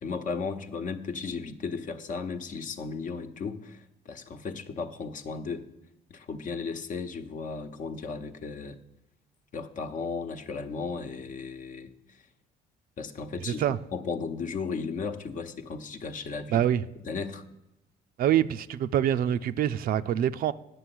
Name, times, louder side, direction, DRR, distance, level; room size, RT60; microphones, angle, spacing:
voice 1, 0.0-5.6 6.1-8.8 9.5-11.9 13.0-16.7 17.0-17.4, left 5 dB, 50° left, 1.0 m, -35 dB
voice 2, 16.5-16.8 18.2-20.5, right 10 dB, 60° right, 0.5 m, -25 dB
9.9 x 6.7 x 7.8 m
cardioid pair, 110°, 17 cm